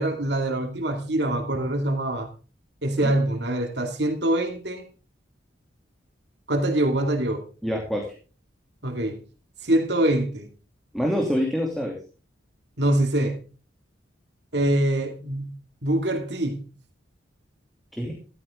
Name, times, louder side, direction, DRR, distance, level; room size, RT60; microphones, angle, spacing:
voice 1, 0.0-2.3 2.8-4.8 6.5-7.4 8.8-9.2 9.6-10.5 12.8-13.4 14.5-15.5 15.8-16.6, right 1 dB, 60° right, 2.5 m, -24 dB
voice 2, 7.6-8.1 10.9-12.0 17.9-18.1, equal, ahead, 2.8 m, -26 dB
14.0 x 14.0 x 3.7 m
head